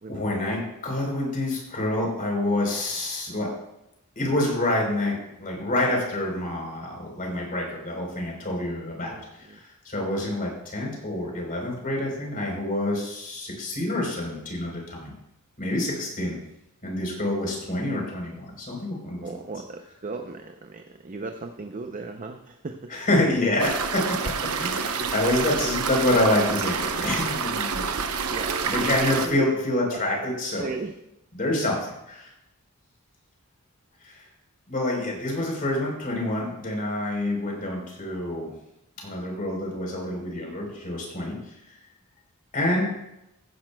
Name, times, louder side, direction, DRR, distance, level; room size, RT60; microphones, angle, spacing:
voice 1, 0.1-3.5 4.2-15.1 15.6-16.4 16.8-19.3 22.9-28.3 28.6-30.7 31.3-31.8 32.1-32.3 34.0-34.2 34.7-38.5 39.0-41.3 42.5-42.9, left 1 dB, 40° left, -1 dB, 3.9 m, -27 dB
voice 2, 9.0-9.6 19.2-22.8 25.0-25.1 28.3-29.4 29.9-30.3 30.6-30.9 35.4-35.5, right 3 dB, 35° right, 5 dB, 0.6 m, -36 dB
sound 1, 23.6-29.3, right 5 dB, 75° right, 0.9 m, -28 dB
15.0 x 10.5 x 2.3 m, 0.86 s
head